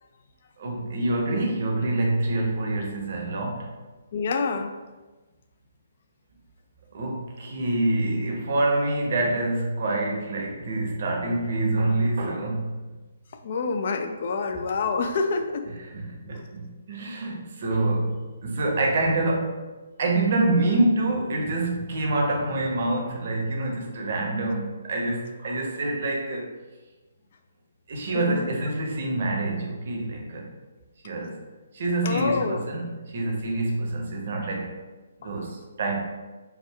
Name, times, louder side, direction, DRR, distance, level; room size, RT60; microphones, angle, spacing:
voice 1, 0.6-3.7 6.9-12.8 14.5-14.6 15.9-19.6 20.0-26.5 27.9-30.5 31.0-31.4 31.7-34.8 35.2-36.0, right 2 dB, 50° right, 0 dB, 0.7 m, -26 dB
voice 2, 4.1-4.7 13.4-15.7 16.3-16.5 28.1-28.5 32.0-32.6 35.2-35.3, left 4 dB, 50° left, 6 dB, 0.3 m, -27 dB
3.5 x 2.2 x 3.3 m, 1.2 s
figure-of-eight pair, 135°, 0 cm